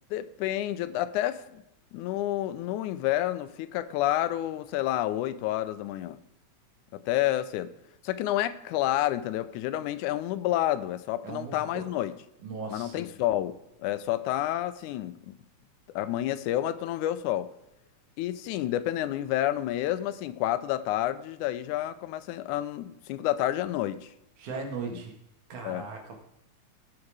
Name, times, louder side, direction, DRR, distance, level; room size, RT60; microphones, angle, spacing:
voice 1, 0.1-1.6 1.9-6.2 6.9-7.7 8.0-12.2 12.7-15.4 16.0-17.5 18.2-24.1 24.9-25.0 25.6-25.9, left 13 dB, 90° left, 14 dB, 2.1 m, -29 dB
voice 2, 11.2-11.7 12.4-13.1 24.4-25.1 25.5-26.2, right 4 dB, 85° right, 2 dB, 3.3 m, -37 dB
17.0 x 6.0 x 4.9 m, 0.83 s
omnidirectional pair, 3.4 m